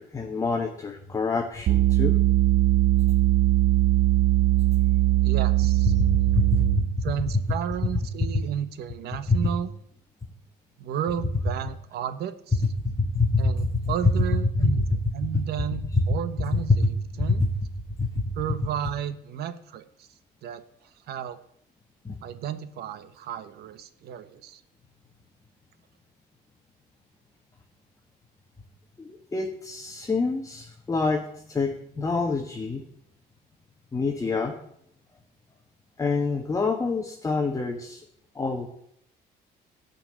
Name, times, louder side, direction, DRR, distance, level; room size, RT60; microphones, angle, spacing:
voice 1, 0.0-2.2 5.9-7.1 7.8-7.9 8.2-8.3 9.3-9.5 12.5-12.6 12.8-14.1 14.6-14.8 15.9-16.0 16.5-16.9 17.2-17.5 18.0-18.3 22.0-22.2 29.0-32.8 33.9-34.6 36.0-38.0 38.3-38.7, left 3 dB, 20° left, 3 dB, 1.5 m, -26 dB
sound 1, 1.7-7.0, right 17 dB, 50° right, 0.4 m, -20 dB
voice 2, 5.2-5.9 7.0-9.7 10.8-12.6 13.4-14.8 15.1-17.4 18.4-20.1 20.4-20.6 21.1-21.4 22.2-24.6, right 9 dB, 70° right, 13 dB, 1.1 m, -33 dB
13.0 x 5.8 x 9.1 m, 0.72 s
cardioid pair, 110°, 17 cm